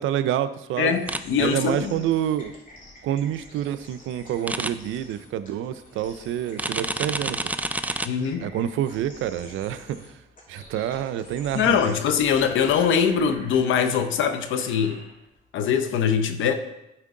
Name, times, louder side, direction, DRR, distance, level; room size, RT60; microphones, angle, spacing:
voice 1, 0.0-1.0 1.4-2.5 3.0-7.4 8.4-10.1 10.5-12.0, right 11 dB, 85° right, 13 dB, 0.5 m, -27 dB
voice 2, 0.8-2.0 8.0-8.5 11.5-15.0 15.5-16.5, left 7 dB, 80° left, 8 dB, 0.8 m, -22 dB
sound 1, 0.9-15.4, left 1 dB, 40° left, 2.6 m, -48 dB
sound 2, 1.1-1.2 4.5-4.7 6.6-8.1, right 2 dB, 10° right, 0.4 m, -28 dB
11.0 x 4.5 x 3.8 m, 0.88 s
cardioid pair, 90°, 20 cm